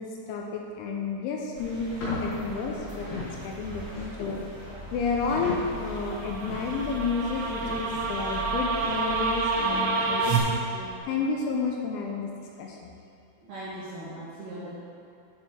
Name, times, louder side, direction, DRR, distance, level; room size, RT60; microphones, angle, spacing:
voice 1, 0.0-4.4 4.9-10.5 11.1-12.3 12.6-12.9, left 4 dB, 85° left, 0 dB, 2.8 m, -31 dB
sound 1, 1.5-9.8, right 2 dB, 55° right, 2.3 m, -41 dB
sound 2, 1.9-11.0, left 2 dB, 60° left, 2.6 m, -41 dB
sound 3, 6.0-10.4, right 4 dB, 90° right, 2.3 m, -28 dB
voice 2, 13.4-14.7, right 1 dB, 70° right, -11 dB, 2.1 m, -40 dB
11.0 x 4.5 x 3.6 m, 2.6 s
omnidirectional pair, 5.6 m